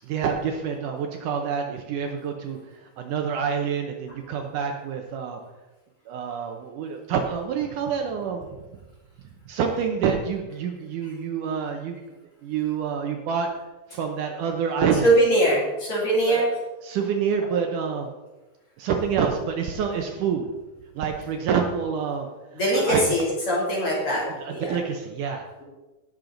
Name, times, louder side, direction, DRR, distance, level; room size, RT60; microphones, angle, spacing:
voice 1, 0.0-2.6 3.0-5.4 6.1-8.5 9.5-12.0 12.4-13.5 13.9-15.1 16.2-16.5 16.8-18.1 18.8-20.5 21.0-22.3 22.7-23.0 24.1-25.5, right 6 dB, 70° right, 3 dB, 2.2 m, -27 dB
voice 2, 15.0-16.5 22.5-24.2 24.5-24.8, right 1 dB, 40° left, -5 dB, 3.7 m, -21 dB
17.5 x 6.7 x 3.9 m, 1.1 s
omnidirectional pair, 4.1 m